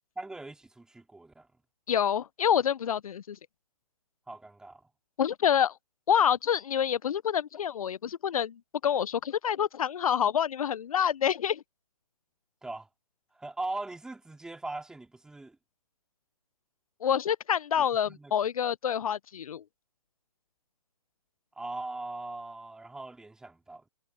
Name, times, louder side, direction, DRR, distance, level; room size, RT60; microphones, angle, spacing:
voice 1, 0.2-1.5 4.3-4.8 12.6-12.9 13.4-15.6 17.8-18.3 21.5-23.9, right 2 dB, 5° right, 3.3 m, -40 dB
voice 2, 1.9-3.4 5.2-5.7 6.1-11.6 17.0-19.6, left 8 dB, 65° left, 0.6 m, -27 dB
hypercardioid pair, 145°, 19 cm